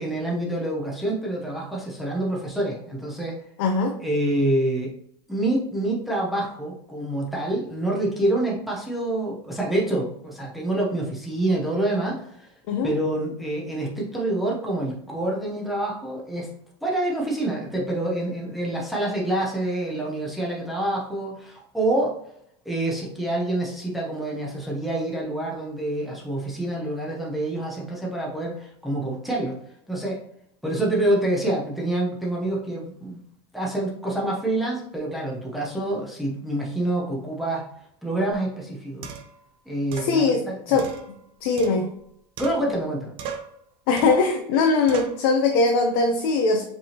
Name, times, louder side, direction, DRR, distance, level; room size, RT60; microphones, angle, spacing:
voice 1, 0.0-3.4 4.0-4.9 5.3-12.6 12.8-16.5 16.8-22.2 22.6-30.2 30.6-33.2 33.5-39.1 39.7-40.8 42.4-43.1, right 1 dB, ahead, -3 dB, 0.8 m, -27 dB
voice 2, 3.6-3.9 12.7-12.9 40.0-40.9 41.4-41.9 43.9-46.6, left 4 dB, 55° left, 2 dB, 0.7 m, -21 dB
sound 1, 38.3-38.4 39.0-39.4 39.9-40.1 40.8-42.1 42.4-42.9 43.2-43.6 44.0-44.3 44.9-45.2, right 7 dB, 40° right, 0.7 m, -38 dB
5.3 x 3.4 x 2.8 m, 0.70 s
supercardioid pair, 160°, 14 cm